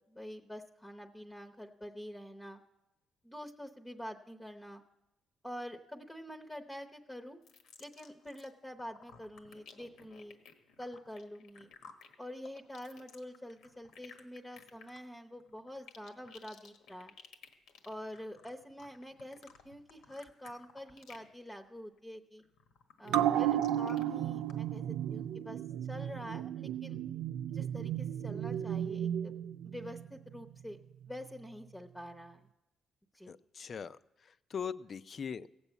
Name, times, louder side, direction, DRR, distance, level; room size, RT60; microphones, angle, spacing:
voice 1, 0.1-2.6 3.2-4.8 5.4-7.4 7.8-10.5 10.8-11.7 12.2-17.1 17.8-22.4 23.0-25.6 25.9-27.0 27.5-29.3 29.6-30.8 31.1-32.5 33.1-33.3, equal, 10° left, 3 dB, 0.8 m, -46 dB
sound 1, 7.4-8.5 8.8-21.3 21.6-22.0 22.4-24.0 24.5-24.6, left 6 dB, 85° left, 1.4 m, -56 dB
sound 2, 23.1-30.0 30.3-30.4, right 11 dB, 85° right, 0.4 m, -34 dB
voice 2, 33.3-34.0 34.2-35.5, left 7 dB, 45° left, 15 dB, 0.4 m, -41 dB
16.5 x 7.0 x 8.2 m, 0.95 s
cardioid pair, 90°, 0 cm